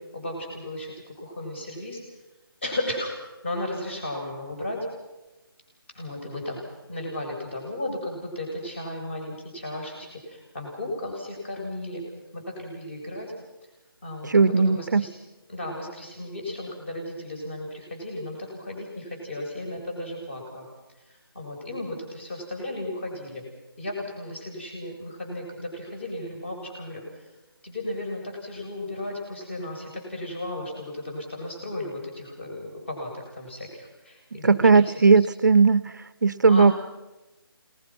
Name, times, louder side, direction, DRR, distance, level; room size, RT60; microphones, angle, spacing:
voice 1, 0.1-2.0 2.6-3.1 3.4-4.9 5.9-6.6 6.9-12.0 12.3-13.3 14.0-15.1 15.5-20.7 21.1-23.4 23.8-27.0 27.6-34.9 36.5-36.7, left 1 dB, 30° left, 1 dB, 7.7 m, -35 dB
voice 2, 14.3-15.0 34.4-35.8 36.2-36.7, right 4 dB, 50° right, 16 dB, 0.7 m, -17 dB
30.0 x 20.0 x 6.2 m, 1.1 s
figure-of-eight pair, 175°, 13 cm